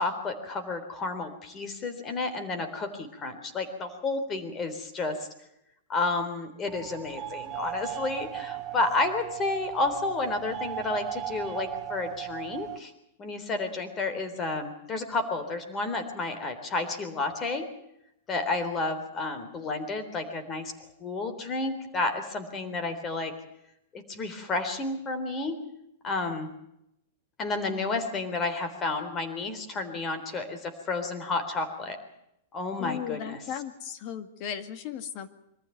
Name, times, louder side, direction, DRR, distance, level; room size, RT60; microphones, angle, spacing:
voice 1, 0.0-5.3 5.9-12.9 13.2-17.7 18.3-20.7 21.0-23.3 23.9-25.6 26.0-26.5 27.4-32.0 32.5-33.4, left 3 dB, 25° left, 9 dB, 3.7 m, -31 dB
sound 1, 6.7-12.8, right 13 dB, 25° right, 1.3 m, -37 dB
voice 2, 32.8-35.3, left 9 dB, 45° left, 10 dB, 2.1 m, -36 dB
24.5 x 14.5 x 9.4 m, 0.80 s
hypercardioid pair, 140°, 0 cm